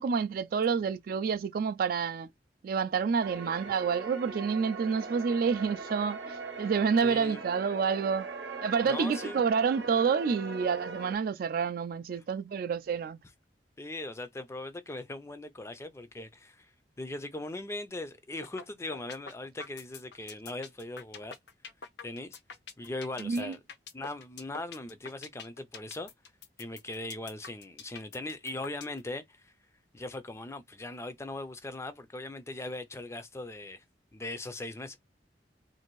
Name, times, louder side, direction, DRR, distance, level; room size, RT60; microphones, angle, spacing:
voice 1, 0.0-2.3 2.6-8.3 8.6-13.2 23.2-23.5, right 6 dB, 55° right, 0.3 m, -29 dB
sound 1, 3.2-11.2, right 3 dB, 90° right, 0.7 m, -40 dB
voice 2, 7.0-7.4 8.8-9.4 13.8-16.7 17.0-21.4 22.0-22.4 22.8-23.6 23.9-26.1 26.6-29.5 29.9-33.8 34.1-35.0, left 2 dB, 15° left, 0.4 m, -39 dB
sound 2, 18.4-18.6 18.9-29.0, left 6 dB, 70° left, 0.6 m, -45 dB
2.6 x 2.6 x 3.0 m
head